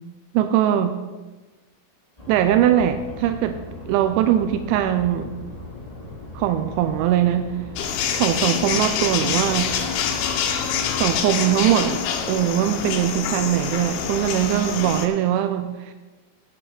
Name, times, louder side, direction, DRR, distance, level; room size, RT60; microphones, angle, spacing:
voice 1, 0.3-1.0 2.3-3.6 3.9-5.3 6.3-7.5 8.2-9.8 11.0-12.0 12.3-15.9, right 11 dB, 90° right, 8 dB, 3.0 m, -21 dB
sound 1, 2.2-11.2, left 2 dB, 10° left, 1.8 m, -38 dB
sound 2, 7.8-15.1, left 7 dB, 75° left, 2.7 m, -26 dB
8.1 x 7.7 x 7.5 m, 1.2 s
omnidirectional pair, 5.3 m